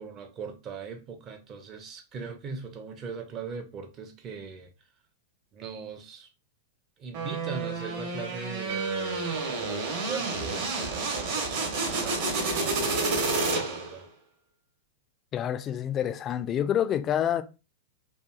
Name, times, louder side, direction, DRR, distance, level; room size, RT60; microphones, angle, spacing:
voice 1, 0.0-4.7 5.5-6.3 7.0-14.1, right 5 dB, 35° right, 0.5 m, -40 dB
sound 1, 7.1-14.0, right 3 dB, 50° right, 1.0 m, -30 dB
sound 2, 8.7-11.6, right 4 dB, 75° right, 0.6 m, -39 dB
voice 2, 15.3-17.4, left 10 dB, 30° left, 0.3 m, -27 dB
2.7 x 2.4 x 2.3 m
figure-of-eight pair, 95°, 0 cm